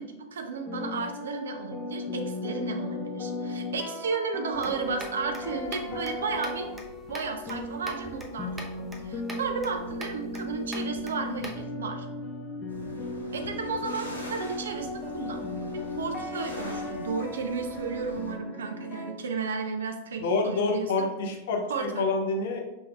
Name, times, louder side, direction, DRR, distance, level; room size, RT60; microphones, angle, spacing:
voice 1, 0.0-6.7 7.1-8.5 9.1-12.1 13.3-15.4 15.7-21.1 21.7-22.1, right 4 dB, 65° right, 5 dB, 0.5 m, -33 dB
sound 1, 0.7-19.1, left 2 dB, 20° left, 0.7 m, -36 dB
sound 2, 4.5-11.6, right 1 dB, 15° right, 0.7 m, -44 dB
sound 3, 12.7-18.3, equal, 90° left, 0.7 m, -45 dB
voice 2, 20.2-22.6, left 3 dB, 55° left, 2 dB, 0.7 m, -27 dB
5.2 x 3.4 x 2.3 m, 1.0 s
figure-of-eight pair, 90°, 0 cm